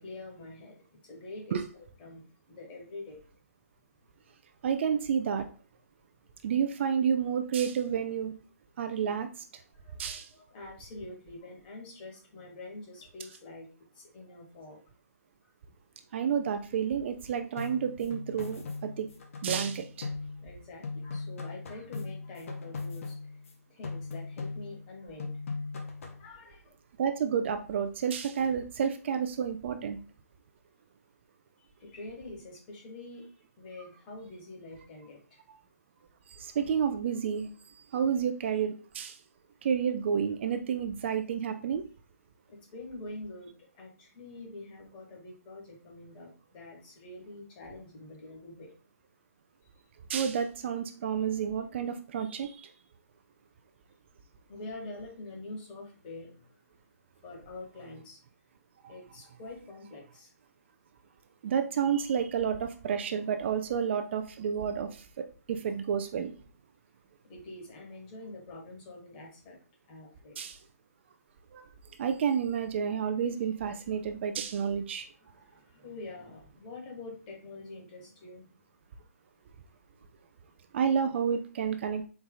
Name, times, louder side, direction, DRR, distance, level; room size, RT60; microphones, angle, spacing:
voice 1, 0.0-3.2 9.5-13.7 13.9-14.8 16.1-16.3 20.4-23.4 23.7-25.4 26.2-26.8 31.6-33.3 33.6-35.4 42.5-48.7 54.5-56.6 57.2-58.2 58.9-60.3 67.2-69.6 69.9-70.4 75.1-78.5 80.0-80.1, left 2 dB, 35° left, 0 dB, 1.7 m, -46 dB
voice 2, 4.6-5.5 6.4-8.3 8.8-9.4 10.0-10.3 16.1-19.1 19.4-20.1 27.0-30.0 36.3-39.2 39.6-41.8 50.1-52.7 61.4-66.3 70.4-70.6 71.5-71.7 72.0-75.1 80.7-82.1, right 7 dB, 45° right, 8 dB, 0.4 m, -30 dB
sound 1, 17.6-20.6 20.8-23.5 23.8-24.9 25.2-26.3, left 3 dB, 55° left, 0.9 m, -39 dB
4.5 x 2.6 x 3.8 m, 0.37 s
figure-of-eight pair, 135°, 9 cm